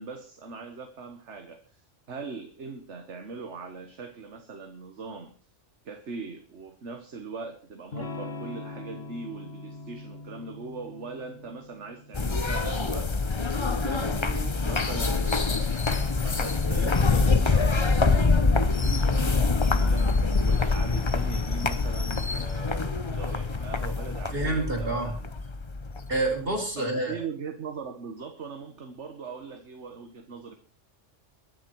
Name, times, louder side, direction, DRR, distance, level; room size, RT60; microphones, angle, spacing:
voice 1, 0.0-5.3 5.8-13.1 13.5-20.1 20.4-25.3 26.8-30.6, right 4 dB, 65° right, 6 dB, 1.7 m, -40 dB
Electric guitar / Strum, 7.9-13.6, left 3 dB, 50° left, 2.1 m, -42 dB
sound 1, 12.1-26.5, left 4 dB, 25° left, 0.8 m, -25 dB
voice 2, 24.3-25.1 26.1-27.2, right 2 dB, 50° right, 1 dB, 4.8 m, -28 dB
22.5 x 10.5 x 4.6 m, 0.38 s
omnidirectional pair, 1.3 m